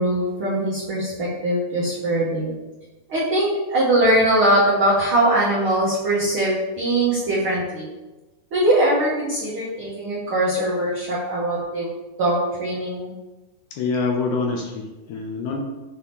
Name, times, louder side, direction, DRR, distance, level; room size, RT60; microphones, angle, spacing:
voice 1, 0.0-2.5 3.1-7.9 8.5-11.9 12.2-13.1, right 1 dB, 75° right, -7 dB, 1.2 m, -21 dB
voice 2, 13.7-15.6, left 4 dB, 80° left, 0 dB, 1.9 m, -25 dB
6.4 x 2.8 x 5.2 m, 1.1 s
omnidirectional pair, 4.0 m